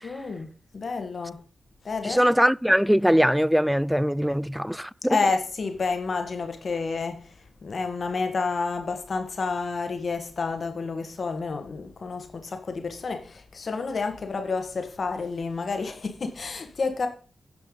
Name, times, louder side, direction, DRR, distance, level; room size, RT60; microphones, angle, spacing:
voice 1, 0.0-1.4 1.9-2.2 5.1-7.3 7.6-17.1, left 4 dB, 60° left, 1.8 m, -29 dB
voice 2, 2.0-5.2, equal, 5° right, 0.3 m, -22 dB
10.0 x 6.0 x 5.4 m
supercardioid pair, 40°, 0 cm